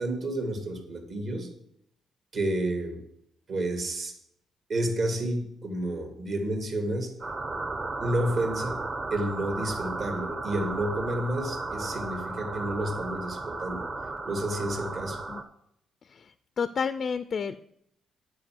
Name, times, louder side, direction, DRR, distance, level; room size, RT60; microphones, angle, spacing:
voice 1, 0.0-1.5 2.3-3.0 3.5-4.1 4.7-7.1 8.0-8.8 9.1-13.9 14.2-15.2, right 1 dB, 55° right, 4 dB, 2.2 m, -30 dB
sound 1, 7.2-15.4, right 2 dB, 30° right, 0.9 m, -34 dB
voice 2, 16.6-17.6, left 6 dB, 50° left, 12 dB, 0.4 m, -30 dB
9.4 x 4.8 x 7.7 m, 0.74 s
cardioid pair, 90°, 0 cm